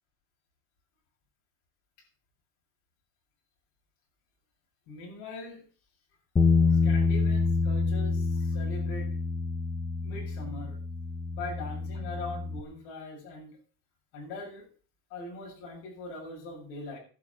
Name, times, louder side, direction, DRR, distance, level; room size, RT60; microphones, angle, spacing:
voice 1, 4.9-5.6 6.7-9.1 10.0-10.8 11.3-13.6 14.1-14.6 15.1-17.0, left 2 dB, 75° left, -1 dB, 7.6 m, -41 dB
Bass guitar, 6.4-12.6, left 4 dB, 10° left, 1.0 m, -27 dB
11.5 x 7.1 x 8.6 m, 0.42 s
cardioid pair, 140°, 40 cm